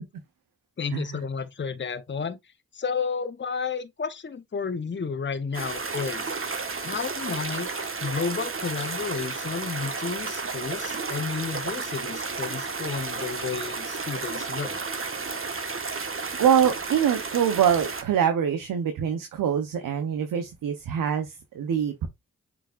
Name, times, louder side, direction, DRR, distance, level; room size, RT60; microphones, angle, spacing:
voice 1, 0.8-2.4 2.7-6.3 6.8-7.7 8.0-14.8, left 5 dB, 35° left, 0.9 m, -32 dB
sound 1, 5.5-18.0, right 4 dB, 40° right, 1.5 m, -32 dB
voice 2, 16.4-22.1, right 8 dB, 85° right, 1.0 m, -24 dB
7.7 x 4.9 x 2.5 m
supercardioid pair, 45°, 32 cm